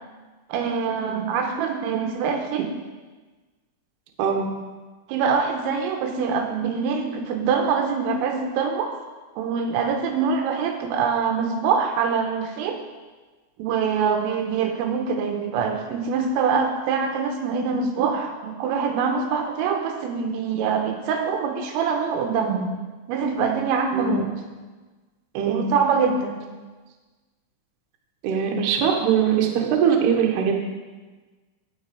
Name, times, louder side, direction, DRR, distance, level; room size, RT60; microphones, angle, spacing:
voice 1, 0.5-2.7 5.1-8.9 9.4-12.8 13.6-22.7 23.1-24.3 25.5-26.4, right 5 dB, 85° right, 3 dB, 3.5 m, -24 dB
voice 2, 28.2-30.5, right 7 dB, 65° right, 1 dB, 2.8 m, -21 dB
18.0 x 6.3 x 4.8 m, 1.3 s
omnidirectional pair, 6.0 m